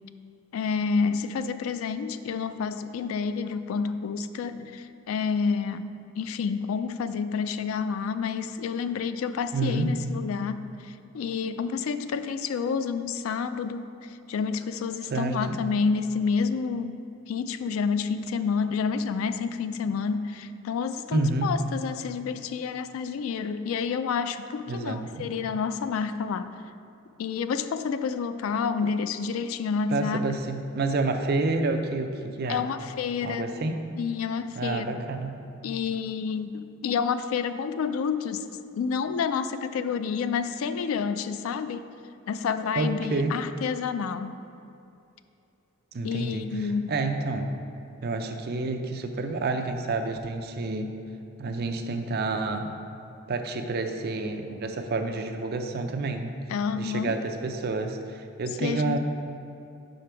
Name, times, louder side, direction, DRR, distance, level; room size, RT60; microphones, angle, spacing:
voice 1, 0.5-17.0 17.3-26.5 27.2-30.2 32.5-33.5 34.0-34.9 35.6-38.4 38.8-41.8 42.3-44.4 46.0-46.9 56.5-57.2 58.6-59.0, left 5 dB, 80° left, 12 dB, 0.3 m, -29 dB
voice 2, 9.5-9.9 15.1-15.6 21.1-21.5 24.7-25.3 29.9-32.6 33.2-33.8 34.6-35.4 42.8-43.4 45.9-47.5 48.0-50.9 51.4-52.7 53.3-56.3 56.8-59.0, right 3 dB, 50° right, 5 dB, 0.5 m, -29 dB
5.9 x 5.1 x 4.4 m, 2.6 s
head